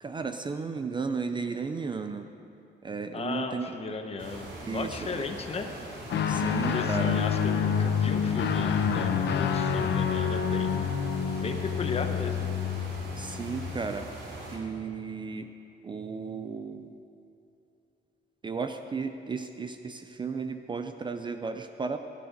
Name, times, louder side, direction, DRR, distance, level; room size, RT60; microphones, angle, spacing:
voice 1, 0.0-2.3 2.8-3.7 4.6-5.2 6.3-7.2 13.2-14.1 14.5-15.5 15.8-16.9 18.4-22.0, right 5 dB, 25° right, 8 dB, 0.4 m, -34 dB
voice 2, 3.1-5.7 6.7-10.8 11.3-12.5, left 4 dB, 30° left, 5 dB, 0.9 m, -35 dB
sound 1, 4.2-14.6, right 1 dB, 85° right, 2.9 m, -42 dB
Guitar, 6.1-13.8, left 7 dB, 65° left, 0.8 m, -28 dB
17.0 x 9.6 x 5.2 m, 2.7 s
cardioid pair, 155°, 19 cm